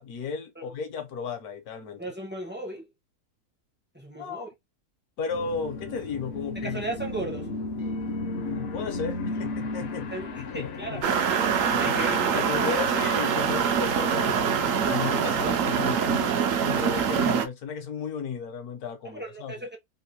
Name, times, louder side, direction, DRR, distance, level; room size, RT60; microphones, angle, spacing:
voice 1, 0.0-2.0 4.1-4.5 5.2-6.8 8.4-10.1 10.5-11.0 11.7-12.0 12.3-14.5 14.9-16.1 16.6-19.5, left 6 dB, 70° left, 1.3 m, -34 dB
voice 2, 2.0-2.9 3.9-4.5 6.5-7.5 10.1-11.2 11.8-12.8 19.0-19.8, right 1 dB, 10° right, 0.6 m, -36 dB
sound 1, 5.3-16.3, left 3 dB, 55° left, 0.8 m, -35 dB
sound 2, 11.0-17.5, right 7 dB, 65° right, 0.9 m, -24 dB
3.6 x 2.6 x 2.9 m
omnidirectional pair, 1.7 m